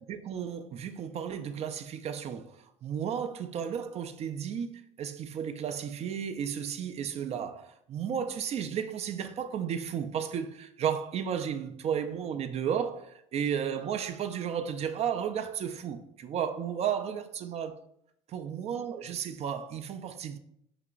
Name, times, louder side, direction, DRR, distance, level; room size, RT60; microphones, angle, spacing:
voice 1, 0.1-17.8 18.3-20.4, right 8 dB, 35° right, 0.4 m, -33 dB
5.8 x 2.9 x 2.4 m
hypercardioid pair, 70°, 18 cm